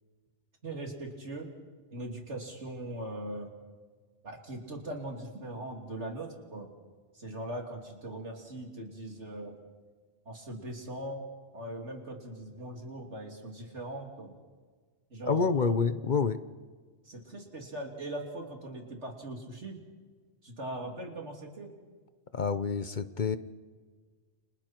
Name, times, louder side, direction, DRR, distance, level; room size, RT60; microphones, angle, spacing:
voice 1, 0.6-1.5 1.9-3.5 4.2-6.7 7.1-9.6 10.3-11.3 11.5-14.3 15.1-15.7 17.1-19.8 20.4-21.7, right 1 dB, 80° right, 1 dB, 3.6 m, -40 dB
voice 2, 15.2-16.4 22.3-23.4, left 5 dB, 45° left, 12 dB, 0.9 m, -27 dB
30.0 x 26.0 x 4.6 m, 1.5 s
omnidirectional pair, 1.2 m